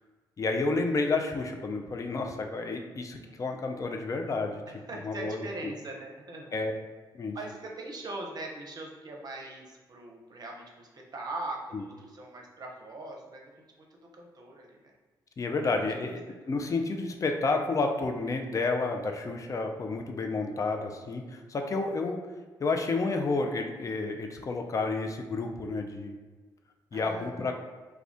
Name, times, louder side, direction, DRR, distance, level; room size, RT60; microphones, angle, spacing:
voice 1, 0.4-4.6 5.0-5.7 6.5-6.7 7.1-7.4 11.7-11.8 15.4-16.2 16.5-22.2 22.6-26.1 26.9-27.6, left 3 dB, 30° left, 4 dB, 0.4 m, -30 dB
voice 2, 4.7-6.5 7.3-13.6 14.2-14.8 15.6-16.4 26.9-27.5, right 2 dB, 40° right, 0 dB, 0.7 m, -41 dB
2.4 x 2.2 x 3.4 m, 1.3 s
hypercardioid pair, 40°, 10 cm